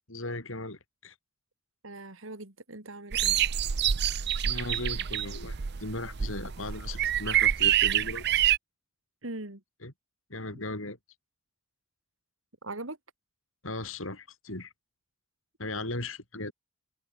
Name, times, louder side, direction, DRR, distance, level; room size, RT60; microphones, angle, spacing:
voice 1, 0.1-1.1 4.4-8.2 9.8-9.9 10.3-11.0 13.6-14.7 15.6-16.5, left 2 dB, 75° left, 6.7 m, -37 dB
voice 2, 1.8-3.4 9.2-9.6 12.6-13.0, right 2 dB, 75° right, 3.0 m, -40 dB
sound 1, 3.1-8.6, right 11 dB, 50° right, 0.6 m, -27 dB
head